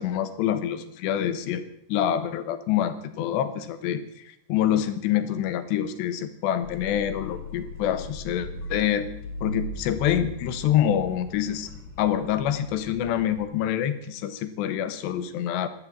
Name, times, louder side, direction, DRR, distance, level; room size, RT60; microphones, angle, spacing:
voice 1, 0.0-1.6 1.9-9.1 9.4-11.7 12.0-15.7, left 10 dB, 85° left, 10 dB, 3.4 m, -26 dB
sound 1, 6.6-13.5, left 1 dB, 50° left, 3.4 m, -38 dB
16.5 x 11.5 x 7.4 m, 0.75 s
omnidirectional pair, 4.8 m